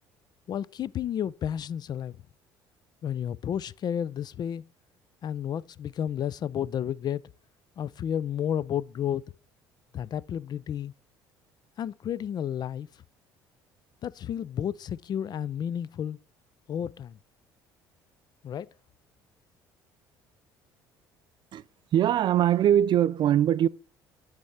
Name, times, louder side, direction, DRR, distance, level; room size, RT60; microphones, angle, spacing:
voice 1, 0.5-2.2 3.0-4.6 5.2-7.2 7.8-9.3 9.9-10.9 11.8-12.9 14.0-16.2 16.7-17.2 18.4-18.7, left 9 dB, 45° left, 0.3 m, -31 dB
voice 2, 21.9-23.7, right 11 dB, 50° right, 0.3 m, -22 dB
9.3 x 3.4 x 5.6 m
supercardioid pair, 70°, 10 cm